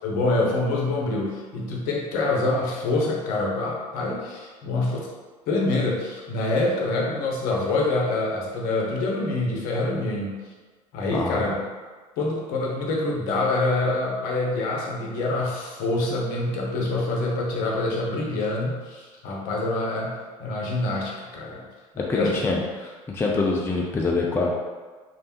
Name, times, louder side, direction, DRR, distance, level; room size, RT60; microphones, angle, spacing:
voice 1, 0.0-5.1 5.5-10.4 10.9-11.6 12.2-21.7 22.0-22.6, left 2 dB, 55° left, -2 dB, 0.7 m, -26 dB
voice 2, 11.1-11.5 22.0-22.6 23.1-24.5, left 3 dB, 15° left, -1 dB, 0.4 m, -25 dB
3.3 x 2.5 x 2.8 m, 1.4 s
figure-of-eight pair, 65°, 17 cm